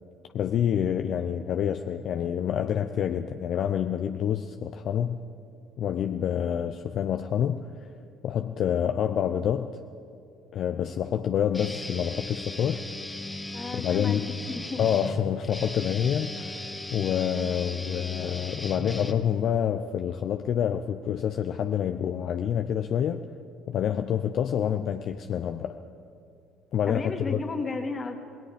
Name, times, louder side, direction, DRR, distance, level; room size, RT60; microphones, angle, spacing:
voice 1, 0.3-5.2 5.8-7.9 8.2-9.8 10.5-12.8 13.7-14.3 14.8-23.2 23.7-25.8 26.7-27.4, left 9 dB, 60° left, 7 dB, 0.7 m, -27 dB
Guitar, 11.5-19.6, left 1 dB, 10° left, 1.6 m, -37 dB
voice 2, 13.5-14.9 26.9-28.2, left 3 dB, 35° left, 5 dB, 2.2 m, -33 dB
27.0 x 18.5 x 5.1 m, 2.4 s
hypercardioid pair, 65°, 0 cm